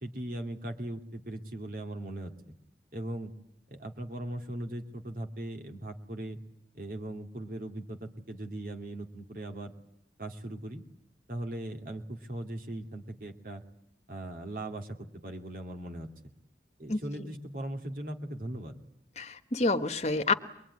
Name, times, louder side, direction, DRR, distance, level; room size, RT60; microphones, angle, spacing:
voice 1, 0.0-2.3 2.9-3.3 3.7-6.4 6.7-9.7 10.2-10.8 11.3-13.6 14.1-16.1 16.8-18.7, right 1 dB, 50° right, 4 dB, 2.5 m, -39 dB
voice 2, 16.9-17.3 19.2-20.3, left 3 dB, 40° left, 6 dB, 1.4 m, -29 dB
25.0 x 22.0 x 9.8 m, 0.75 s
head